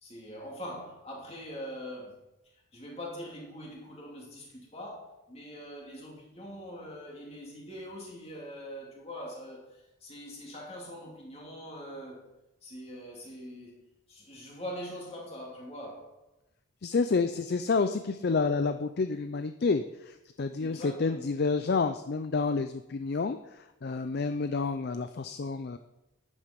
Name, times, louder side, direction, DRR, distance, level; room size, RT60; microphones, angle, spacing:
voice 1, 0.0-2.2 2.7-12.3 12.6-16.2 20.6-21.3, equal, 30° left, 2.8 m, -43 dB
voice 2, 16.8-25.8, left 4 dB, 45° left, 0.4 m, -29 dB
12.0 x 9.7 x 5.2 m
head